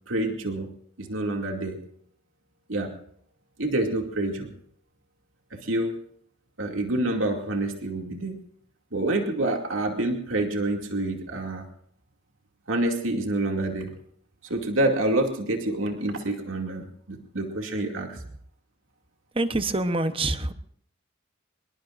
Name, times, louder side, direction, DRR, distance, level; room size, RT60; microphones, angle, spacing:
voice 1, 0.1-0.7 1.0-1.8 2.7-2.9 3.6-4.5 5.6-6.0 6.6-8.4 8.9-11.7 12.7-13.9 14.5-18.2, right 1 dB, 80° right, 2 dB, 2.5 m, -27 dB
voice 2, 19.3-20.5, right 2 dB, 25° right, 10 dB, 0.9 m, -26 dB
25.5 x 21.5 x 2.6 m, 0.67 s
head